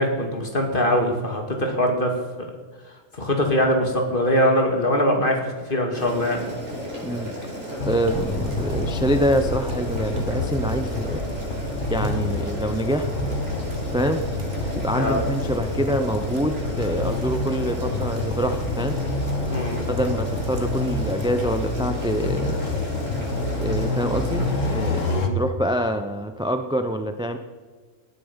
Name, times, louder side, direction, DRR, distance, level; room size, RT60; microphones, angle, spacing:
voice 1, 0.0-2.1 3.1-6.4 15.0-15.2 19.5-19.8 25.1-25.4, equal, 40° left, 2 dB, 2.6 m, -22 dB
Boiling, 5.9-25.1, equal, 80° right, 4.6 m, -33 dB
sound 1, 7.8-25.3, left 3 dB, 75° left, 1.8 m, -28 dB
voice 2, 7.9-11.2 11.9-13.1 13.9-14.2 14.7-19.0 19.9-22.6 23.6-25.1 25.3-27.4, right 1 dB, 5° right, 7 dB, 0.6 m, -25 dB
sound 2, 8.0-21.9, right 2 dB, 40° right, 2.0 m, -37 dB
19.0 x 11.0 x 5.3 m, 1.4 s
omnidirectional pair, 1.3 m